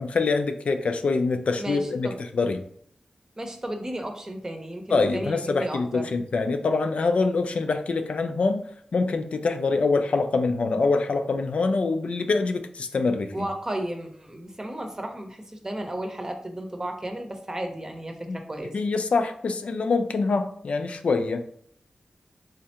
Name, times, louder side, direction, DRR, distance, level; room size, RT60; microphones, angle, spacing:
voice 1, 0.0-2.1 2.3-2.6 4.9-8.6 8.9-13.3 18.3-18.4 18.7-21.4, left 3 dB, 75° left, 7 dB, 0.4 m, -25 dB
voice 2, 1.6-2.2 3.4-6.1 13.3-18.7, right 1 dB, 25° right, 4 dB, 0.7 m, -34 dB
3.6 x 3.2 x 2.8 m, 0.64 s
cardioid pair, 60°, 2 cm